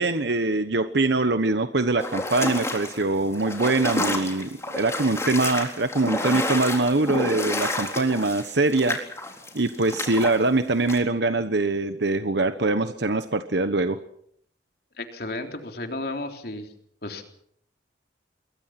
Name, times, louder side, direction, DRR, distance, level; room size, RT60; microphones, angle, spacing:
voice 1, 0.0-9.0 9.5-14.0, right 2 dB, 70° right, 9 dB, 1.1 m, -23 dB
sound 1, 2.0-10.4 10.9-11.0, left 1 dB, 15° left, 3.9 m, -30 dB
voice 2, 15.0-16.7 17.0-17.2, left 2 dB, 55° left, 4 dB, 3.6 m, -33 dB
27.5 x 22.0 x 6.0 m, 0.67 s
head